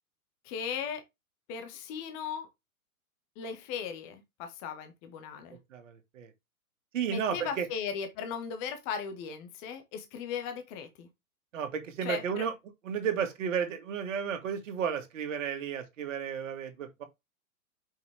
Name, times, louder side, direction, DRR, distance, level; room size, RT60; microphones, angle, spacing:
voice 1, 0.4-1.0 1.5-2.5 3.4-5.6 7.1-11.1 12.0-12.5, left 7 dB, 10° left, 0.3 m, -37 dB
voice 2, 5.7-6.3 6.9-7.7 11.5-12.5 12.8-17.0, right 7 dB, 60° right, 2.1 m, -33 dB
5.8 x 5.5 x 3.3 m
figure-of-eight pair, 115°, 43 cm